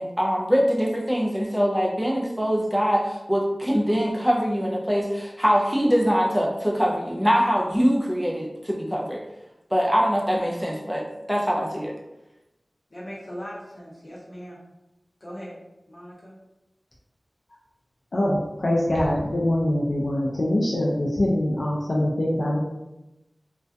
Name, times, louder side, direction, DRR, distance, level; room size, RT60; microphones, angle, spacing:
voice 1, 0.0-9.2 9.7-12.0, equal, 5° right, -2 dB, 0.3 m, -23 dB
voice 2, 12.9-14.6 15.2-15.5 15.9-16.4, equal, 45° left, -6 dB, 0.9 m, -39 dB
voice 3, 18.1-22.6, left 1 dB, 70° left, -4 dB, 0.4 m, -23 dB
2.3 x 2.1 x 2.6 m, 0.94 s
wide cardioid pair, 65°, 0 cm